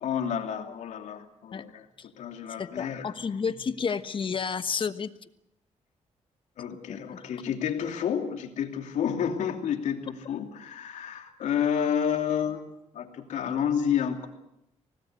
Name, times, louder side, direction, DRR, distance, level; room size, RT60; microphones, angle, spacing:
voice 1, 0.0-1.9 2.1-3.1 6.6-12.6 12.9-14.3, left 8 dB, 85° left, 4 dB, 2.9 m, -30 dB
voice 2, 2.6-5.3 6.9-7.0 7.5-7.6, left 6 dB, 45° left, 12 dB, 1.3 m, -31 dB
25.0 x 18.5 x 8.2 m, 0.81 s
cardioid pair, 105°, 12 cm